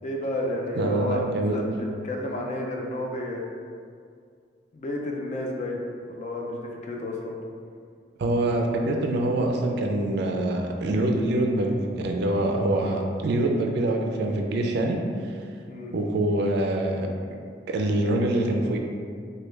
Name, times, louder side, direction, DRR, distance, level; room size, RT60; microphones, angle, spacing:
voice 1, 0.0-3.4 4.7-5.8 6.1-7.4 15.7-16.0, left 1 dB, 40° left, 0 dB, 0.4 m, -31 dB
voice 2, 0.8-1.6 8.2-15.0 15.2-15.4 15.9-17.1 17.7-18.8, right 1 dB, 65° right, 2 dB, 0.3 m, -25 dB
3.1 x 2.2 x 3.3 m, 2.2 s
head